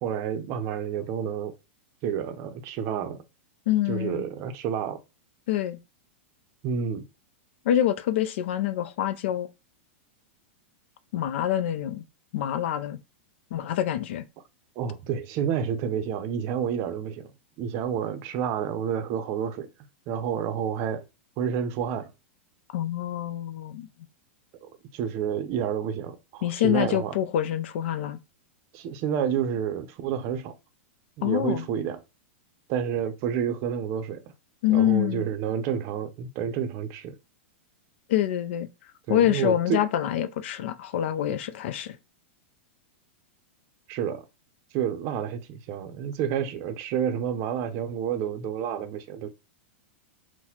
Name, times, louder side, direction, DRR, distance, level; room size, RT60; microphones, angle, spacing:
voice 1, 0.0-1.5 2.0-3.2 3.9-5.0 6.6-7.1 14.8-17.3 17.6-19.7 20.1-21.0 21.4-22.1 24.6-27.1 28.7-30.5 31.2-32.0 32.7-34.2 34.7-37.1 39.1-39.8 43.9-44.2 44.7-49.3, right 8 dB, 45° right, 0.5 m, -29 dB
voice 2, 3.7-4.2 5.5-5.8 7.6-9.5 11.1-12.0 12.3-13.0 13.5-14.2 22.7-23.9 26.4-28.2 31.2-31.6 34.6-35.2 38.1-38.7 39.1-42.0, left 11 dB, 65° left, 0.4 m, -26 dB
4.0 x 2.1 x 2.9 m
hypercardioid pair, 130°, 7 cm